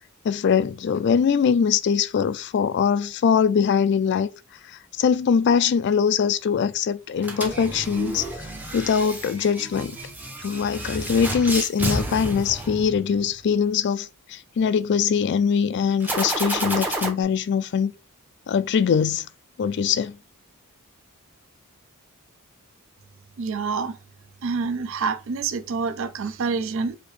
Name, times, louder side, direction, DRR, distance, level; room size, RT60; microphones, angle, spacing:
voice 1, 0.2-4.3 5.0-8.3 8.7-10.0 10.4-17.9 18.5-19.3 19.6-20.2, left 7 dB, 50° left, 0.3 m, -22 dB
sound 1, 7.2-13.3 16.0-17.1, right 1 dB, 10° right, 0.6 m, -30 dB
voice 2, 23.4-24.0 24.4-27.0, right 5 dB, 60° right, 0.4 m, -27 dB
4.9 x 2.7 x 3.1 m
head